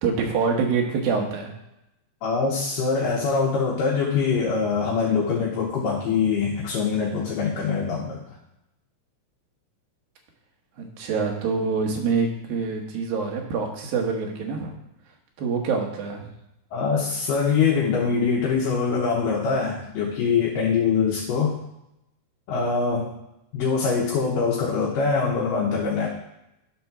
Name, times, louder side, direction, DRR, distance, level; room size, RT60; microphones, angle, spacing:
voice 1, 0.0-1.5 10.8-14.8 15.4-16.3, right 5 dB, 80° right, 1 dB, 3.1 m, -25 dB
voice 2, 2.2-8.2 16.7-21.6 22.5-23.1 23.5-26.1, left 5 dB, 70° left, -3 dB, 2.7 m, -23 dB
10.5 x 4.2 x 6.0 m, 0.86 s
omnidirectional pair, 4.2 m